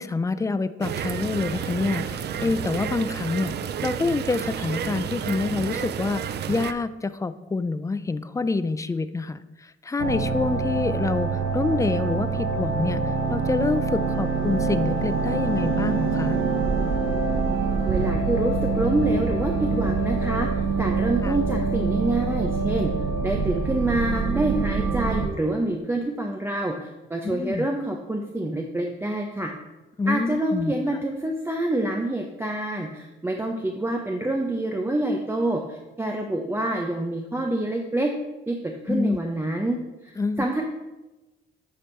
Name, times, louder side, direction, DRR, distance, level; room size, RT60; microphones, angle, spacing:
voice 1, 0.0-3.5 3.8-13.0 13.3-16.4 21.2-21.4 27.2-27.7 30.0-30.7 38.9-39.2 40.2-40.4, left 3 dB, 15° left, 13 dB, 0.4 m, -27 dB
sound 1, 0.8-6.7, right 8 dB, 55° right, 0.4 m, -31 dB
sound 2, 10.0-25.3, right 4 dB, 90° right, 0.8 m, -25 dB
voice 2, 17.9-20.5 20.8-22.9 23.2-29.5 30.1-38.1 38.5-39.8 40.0-40.6, right 1 dB, 10° right, 1 dB, 0.7 m, -27 dB
10.0 x 3.5 x 4.4 m, 1.1 s
cardioid pair, 90°, 20 cm